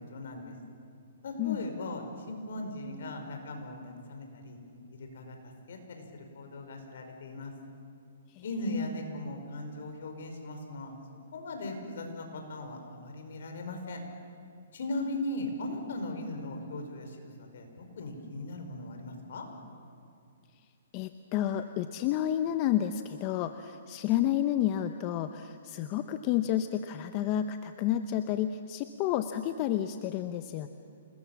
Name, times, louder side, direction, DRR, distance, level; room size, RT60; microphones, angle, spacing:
voice 1, 0.1-0.5 1.2-4.6 4.9-7.5 8.4-11.0 11.3-14.0 14.7-19.4, left 1 dB, 65° left, 4 dB, 5.2 m, -38 dB
voice 2, 20.9-30.7, left 11 dB, 30° left, 9 dB, 0.8 m, -30 dB
28.5 x 20.5 x 7.4 m, 2.5 s
hypercardioid pair, 150°, 0 cm